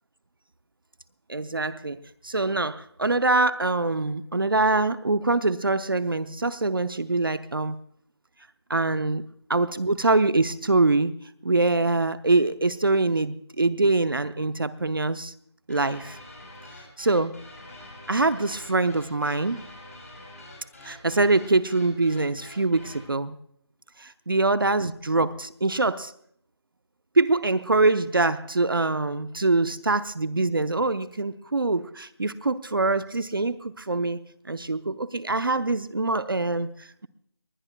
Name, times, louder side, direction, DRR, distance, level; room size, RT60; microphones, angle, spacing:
voice 1, 1.3-7.8 8.7-9.2 9.5-11.1 11.4-15.3 15.7-16.2 17.0-17.4 18.1-19.7 20.8-23.3 24.0-26.1 27.1-34.2 34.5-37.1, right 3 dB, 55° right, 13 dB, 0.7 m, -24 dB
sound 1, 15.7-23.1, left 1 dB, 35° left, 5.3 m, -46 dB
21.5 x 20.0 x 2.2 m, 0.67 s
figure-of-eight pair, 180°, 14 cm